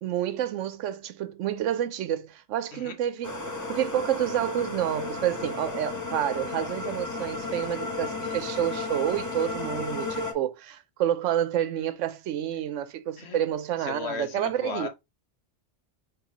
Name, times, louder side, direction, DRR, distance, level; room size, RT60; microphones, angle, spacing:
voice 1, 0.0-3.3 3.7-14.9, right 11 dB, 85° right, 1.0 m, -29 dB
sound 1, 3.2-10.3, left 3 dB, 20° left, 0.7 m, -33 dB
voice 2, 13.8-14.9, left 5 dB, 60° left, 1.2 m, -35 dB
5.4 x 3.3 x 2.9 m
omnidirectional pair, 1.3 m